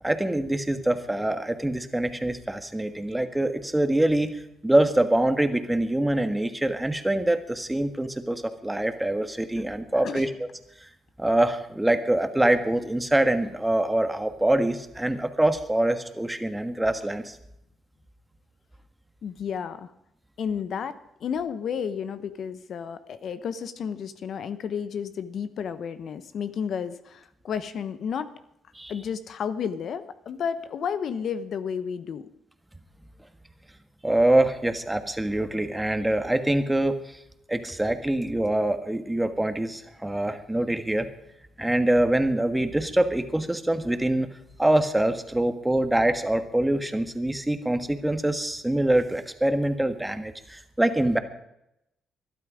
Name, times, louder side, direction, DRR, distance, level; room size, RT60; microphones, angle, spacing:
voice 1, 0.0-10.5 10.8-10.9 11.2-17.4 28.7-28.9 34.0-37.2 37.5-41.1 41.6-44.3 44.6-51.2, right 1 dB, 10° right, 8 dB, 1.5 m, -24 dB
voice 2, 19.2-19.9 20.4-28.3 28.9-32.3, left 7 dB, 60° left, 12 dB, 1.0 m, -32 dB
21.5 x 12.0 x 5.0 m, 0.83 s
cardioid pair, 90°, 0 cm